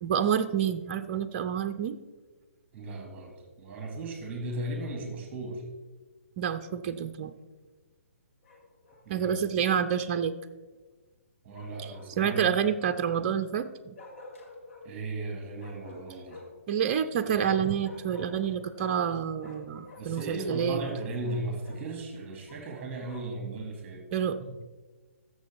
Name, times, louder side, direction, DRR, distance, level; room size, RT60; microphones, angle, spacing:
voice 1, 0.0-2.0 6.4-7.3 9.1-10.4 12.2-14.0 16.7-20.8 24.1-24.4, right 8 dB, 35° right, 9 dB, 0.5 m, -28 dB
voice 2, 2.7-5.6 9.1-9.3 11.4-12.5 14.8-16.4 20.0-24.0, right 2 dB, 20° right, 3 dB, 2.3 m, -36 dB
Bark, 8.4-9.1 11.5-12.6 14.0-14.9 15.5-16.6 17.4-19.1 19.4-21.8 22.5-23.4, left 2 dB, 60° left, 2.3 m, -49 dB
14.0 x 6.8 x 3.5 m, 1.3 s
figure-of-eight pair, 135°, 8 cm